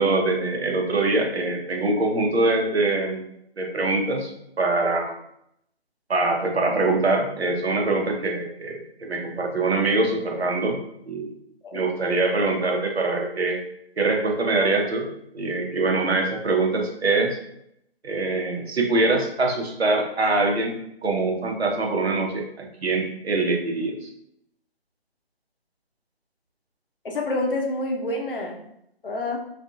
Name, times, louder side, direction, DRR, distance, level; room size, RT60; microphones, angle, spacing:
voice 1, 0.0-3.2 3.6-4.3 4.6-5.1 6.1-10.8 11.1-11.3 11.7-13.6 14.0-15.1 15.3-17.4 18.0-24.1, right 2 dB, 75° right, 1 dB, 0.8 m, -23 dB
voice 2, 27.0-28.6 29.0-29.4, left 2 dB, 60° left, 1 dB, 0.7 m, -27 dB
2.7 x 2.4 x 2.4 m, 0.74 s
figure-of-eight pair, 150°, 32 cm